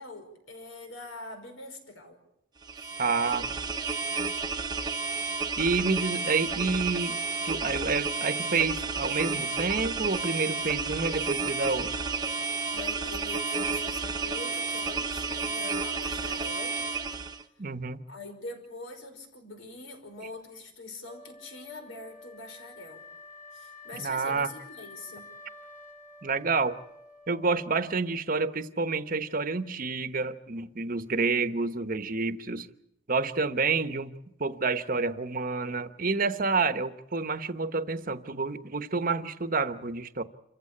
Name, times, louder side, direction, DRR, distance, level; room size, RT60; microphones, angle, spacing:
voice 1, 0.0-2.2 2.8-3.0 12.7-16.8 18.1-23.1 23.5-25.4, left 2 dB, 80° left, 6 dB, 5.3 m, -44 dB
sound 1, 2.6-17.4, right 4 dB, 20° right, 1.0 m, -31 dB
voice 2, 3.0-3.5 5.6-7.2 7.4-11.9 17.6-18.0 23.9-24.5 26.2-26.8 27.3-32.7 33.1-34.1 34.4-40.2, right 4 dB, 45° right, 11 dB, 1.0 m, -29 dB
Wind instrument woodwind instrument, 21.1-28.1, left 3 dB, 15° left, 2.4 m, -49 dB
27.5 x 15.5 x 8.6 m, 0.84 s
head